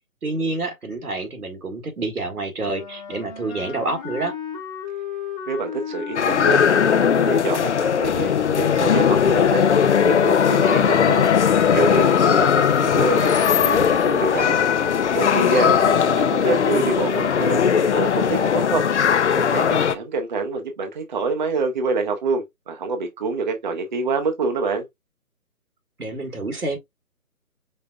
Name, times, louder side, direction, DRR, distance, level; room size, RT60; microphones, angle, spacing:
voice 1, 0.2-4.4 15.5-16.1 26.0-26.8, right 2 dB, 85° right, 1.8 m, -28 dB
Wind instrument woodwind instrument, 2.6-8.2, left 7 dB, 20° left, 1.5 m, -35 dB
voice 2, 5.5-9.6 10.0-11.2 11.7-14.6 15.1-15.7 16.1-18.9 19.5-24.8, right 3 dB, 35° right, 0.7 m, -26 dB
sound 1, 6.2-20.0, left 7 dB, 50° left, 0.7 m, -18 dB
5.3 x 3.7 x 2.3 m
figure-of-eight pair, 150°, 43 cm